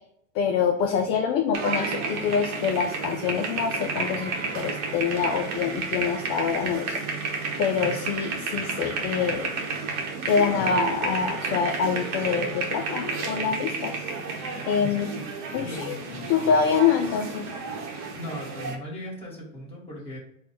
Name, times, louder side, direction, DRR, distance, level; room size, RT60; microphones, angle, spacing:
voice 1, 0.4-9.5 10.2-14.0 14.6-15.1 15.5-16.0 16.3-17.5, left 6 dB, 35° left, 4 dB, 0.4 m, -25 dB
sound 1, 1.5-18.8, right 4 dB, 40° right, 1.0 m, -31 dB
voice 2, 14.8-15.3 15.6-16.0 18.1-20.2, equal, 15° left, -4 dB, 1.6 m, -38 dB
4.2 x 2.3 x 4.7 m, 0.72 s
supercardioid pair, 125°, 41 cm